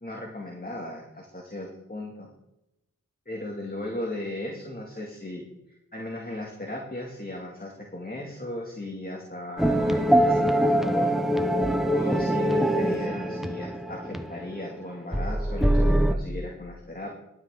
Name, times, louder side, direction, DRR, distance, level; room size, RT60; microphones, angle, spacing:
voice 1, 0.0-2.3 3.3-11.2 11.9-17.1, left 1 dB, 25° left, -1 dB, 2.3 m, -36 dB
sound 1, 9.6-14.7 15.1-16.1, right 1 dB, ahead, 1.0 m, -23 dB
12.0 x 10.0 x 3.8 m, 0.88 s
cardioid pair, 40°, 33 cm